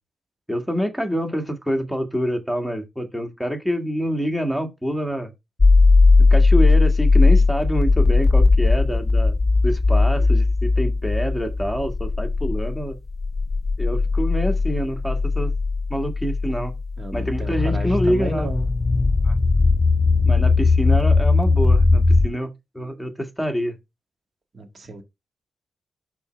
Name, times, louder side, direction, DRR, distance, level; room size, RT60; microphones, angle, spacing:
voice 1, 0.5-5.3 6.2-9.4 9.6-13.0 13.8-15.5 15.9-16.7 17.1-18.5 19.2-19.3 20.3-22.5 22.7-23.8, equal, ahead, 1.8 m, -26 dB
sound 1, 5.6-22.3, left 3 dB, 25° left, 0.4 m, -18 dB
voice 2, 17.0-18.7 24.5-25.0, right 2 dB, 40° right, 2.0 m, -33 dB
5.6 x 4.3 x 5.1 m
cardioid pair, 105°, 0 cm